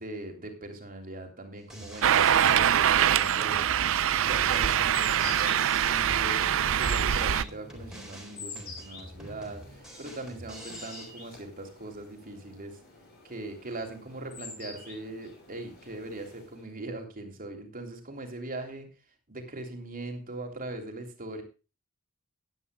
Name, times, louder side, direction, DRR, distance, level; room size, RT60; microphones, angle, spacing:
voice 1, 0.0-3.9 4.2-12.8 13.2-18.9 19.3-21.4, right 2 dB, 40° right, 3 dB, 3.3 m, -40 dB
Drum kit, 1.6-11.1, equal, 5° right, 3.8 m, -46 dB
sound 1, 1.8-16.8, left 4 dB, 45° left, 6.0 m, -47 dB
sound 2, 2.0-7.4, right 9 dB, 65° right, 0.6 m, -24 dB
18.0 x 10.5 x 2.3 m, 0.31 s
head